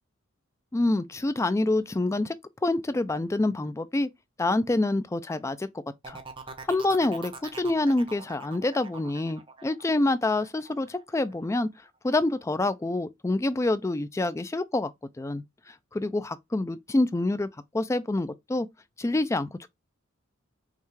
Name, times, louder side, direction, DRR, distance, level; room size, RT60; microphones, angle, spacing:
voice 1, 0.7-2.4 2.6-4.1 4.4-5.7 6.1-6.2 6.7-11.7 12.0-14.9 15.2-17.5 17.7-18.7 19.0-19.7, left 2 dB, 15° left, 0.3 m, -27 dB
sound 1, 6.0-11.7 12.1-12.5, right 4 dB, 25° right, 0.6 m, -44 dB
5.4 x 2.3 x 3.2 m
head